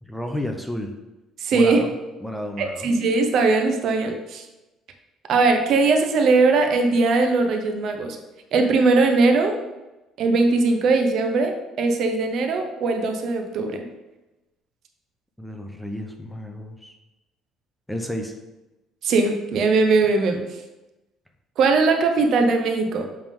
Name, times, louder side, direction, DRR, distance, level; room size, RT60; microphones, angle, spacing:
voice 1, 0.0-0.9 1.5-1.9 2.2-2.9 15.4-16.9 17.9-18.3, left 1 dB, 5° left, 4 dB, 0.7 m, -31 dB
voice 2, 1.4-1.8 2.6-4.4 5.3-8.2 8.5-9.6 10.2-13.8 19.0-20.4 21.6-23.1, right 3 dB, 60° right, 4 dB, 0.8 m, -20 dB
7.4 x 3.6 x 3.6 m, 1.0 s
cardioid pair, 115°, 0 cm